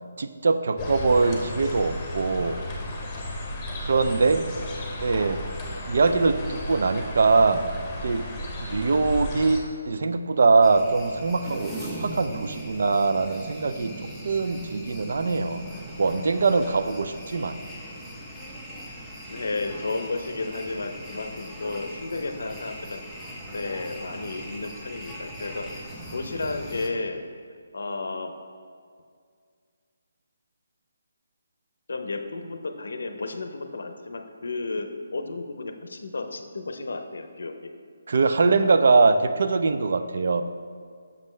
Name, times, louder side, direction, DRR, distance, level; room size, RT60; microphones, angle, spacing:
voice 1, 0.2-2.6 3.8-4.5 5.0-5.4 5.9-7.7 8.0-8.3 8.6-11.7 12.0-15.6 16.0-17.6 38.1-40.4, right 4 dB, 65° right, 10 dB, 0.4 m, -22 dB
sound 1, 0.8-9.6, left 1 dB, 20° left, 0.9 m, -34 dB
sound 2, 10.6-26.9, right 1 dB, ahead, 0.7 m, -39 dB
voice 2, 18.9-23.1 23.5-25.7 26.1-27.2 27.7-28.3 31.9-37.6, left 3 dB, 75° left, 6 dB, 0.6 m, -33 dB
6.5 x 5.3 x 3.2 m, 2.1 s
hypercardioid pair, 160°, 0 cm